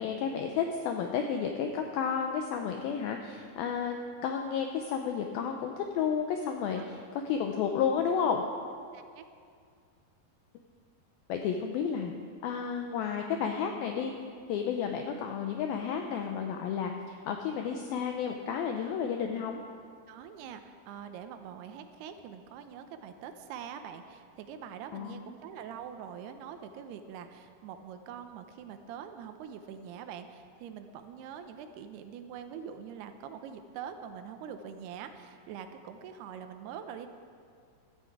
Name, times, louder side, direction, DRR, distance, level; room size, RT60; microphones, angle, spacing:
voice 1, 0.0-8.4 11.3-12.1 12.4-14.1 14.5-19.6 24.9-25.3, left 7 dB, 80° left, 4 dB, 2.2 m, -32 dB
voice 2, 8.9-9.2 20.1-37.1, right 8 dB, 80° right, 8 dB, 2.7 m, -44 dB
16.0 x 13.5 x 4.7 m, 2.2 s
omnidirectional pair, 4.9 m